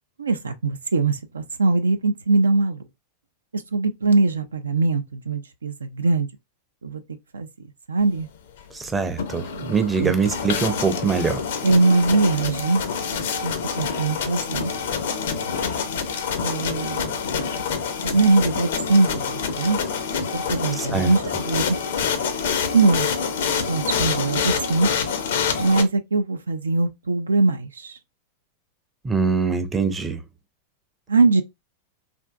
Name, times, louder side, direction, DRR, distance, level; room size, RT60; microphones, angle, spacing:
voice 1, 0.2-2.8 3.5-6.3 6.8-7.0 7.3-7.5 7.9-8.3 9.5-9.7 10.0-10.1 11.6-12.8 13.4-14.7 16.4-17.2 18.0-19.8 20.3-21.8 22.7-23.1 23.7-24.9 25.6-28.0 31.1-31.4, right 3 dB, 75° right, 0.3 m, -21 dB
voice 2, 8.7-11.4 20.8-21.1 29.0-30.2, right 5 dB, 15° right, 0.5 m, -23 dB
sound 1, 9.0-25.8, left 6 dB, 60° left, 0.5 m, -27 dB
3.4 x 2.5 x 2.3 m
figure-of-eight pair, 90°, 0 cm